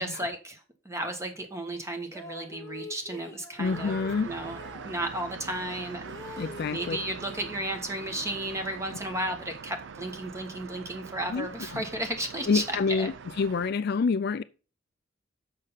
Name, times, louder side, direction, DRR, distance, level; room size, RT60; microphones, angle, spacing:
voice 1, 0.0-4.0 4.2-4.6 4.8-13.1, right 1 dB, 15° right, 1.4 m, -34 dB
sound 1, 2.0-4.9 5.6-7.5 7.9-9.0, left 3 dB, 15° left, 1.5 m, -45 dB
voice 2, 3.6-4.3 6.4-7.0 11.3-11.8 12.5-14.4, left 5 dB, 50° left, 0.4 m, -28 dB
sound 2, 3.6-13.7, right 5 dB, 60° right, 0.4 m, -43 dB
6.6 x 5.5 x 5.6 m
head